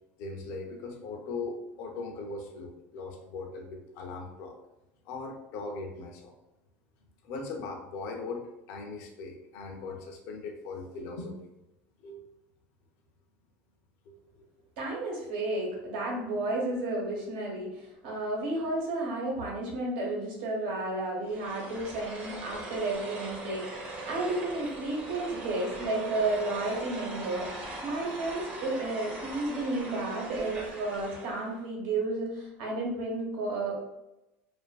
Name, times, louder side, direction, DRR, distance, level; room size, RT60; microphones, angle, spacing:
voice 1, 0.2-4.6 5.1-6.4 7.2-11.4 12.0-12.2 14.1-14.2 22.7-22.8 28.0-28.1 32.8-32.9, left 3 dB, 60° left, 2 dB, 0.5 m, -39 dB
voice 2, 14.8-33.8, right 2 dB, 90° right, -2 dB, 1.0 m, -32 dB
sound 1, 21.2-31.6, right 2 dB, 25° right, 0.6 m, -41 dB
2.5 x 2.4 x 2.3 m, 0.94 s
cardioid pair, 150°, 6 cm